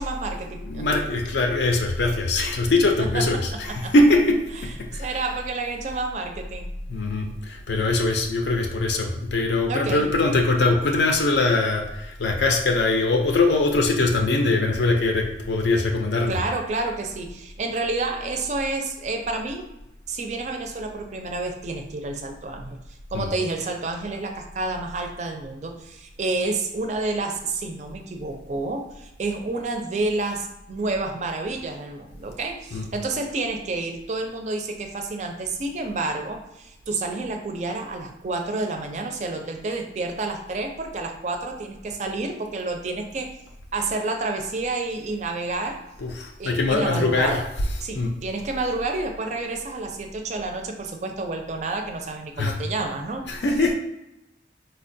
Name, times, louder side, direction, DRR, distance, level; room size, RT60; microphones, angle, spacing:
voice 1, 0.0-0.8 3.0-3.9 4.9-6.7 9.7-10.1 16.3-19.7 20.1-22.8 23.1-43.4 43.7-45.8 46.4-47.4 47.8-53.2, right 3 dB, 40° right, 4 dB, 0.4 m, -29 dB
voice 2, 0.6-4.4 4.9-5.1 6.9-16.4 23.1-23.3 32.7-32.8 46.0-47.4 47.9-48.1 52.4-52.6 53.3-53.7, left 2 dB, 70° left, 2 dB, 0.4 m, -22 dB
4.1 x 2.2 x 2.6 m, 0.90 s
head